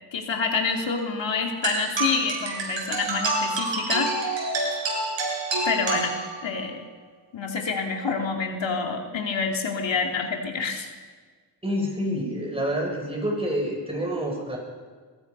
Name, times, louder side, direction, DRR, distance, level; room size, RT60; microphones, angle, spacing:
voice 1, 0.1-4.7 5.6-6.8 7.3-10.9, left 5 dB, 85° left, 2 dB, 3.0 m, -28 dB
sound 1, 1.6-6.6, right 3 dB, 80° right, 6.8 m, -28 dB
voice 2, 11.6-14.6, equal, 15° right, 0 dB, 7.0 m, -27 dB
22.5 x 21.5 x 5.6 m, 1.5 s
wide cardioid pair, 95°, 44 cm